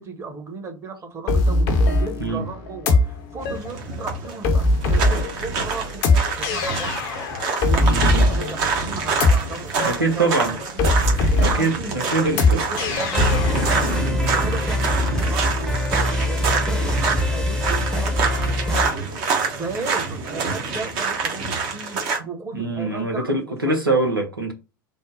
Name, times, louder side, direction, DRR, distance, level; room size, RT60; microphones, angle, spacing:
voice 1, 0.0-7.2 7.7-10.9 11.4-19.0 19.5-22.0 22.2-23.8, right 4 dB, 25° right, 1.0 m, -35 dB
sound 1, 1.3-14.0, left 2 dB, 50° left, 0.7 m, -21 dB
sound 2, 3.4-22.2, right 4 dB, 50° right, 1.0 m, -26 dB
voice 2, 7.8-8.2 9.8-10.5 11.3-12.6 22.2-22.3 22.5-24.5, right 3 dB, 90° right, 0.8 m, -23 dB
sound 3, 11.0-11.8 12.2-18.9, left 1 dB, 5° left, 0.8 m, -24 dB
3.6 x 2.1 x 3.8 m
figure-of-eight pair, 80°, 11 cm